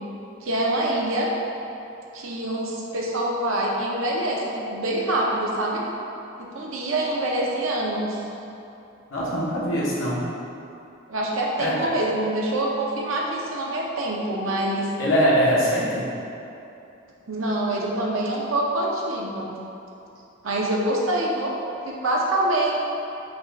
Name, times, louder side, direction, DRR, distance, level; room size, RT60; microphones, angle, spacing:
voice 1, 0.4-1.3 2.1-5.8 6.5-8.2 11.1-14.9 17.3-19.5 20.4-21.5 21.8-22.7, right 1 dB, 75° right, -3 dB, 0.7 m, -25 dB
voice 2, 9.1-10.3 11.6-11.7 15.0-16.0, equal, 70° left, -7 dB, 1.2 m, -22 dB
5.5 x 2.4 x 4.0 m, 2.8 s
head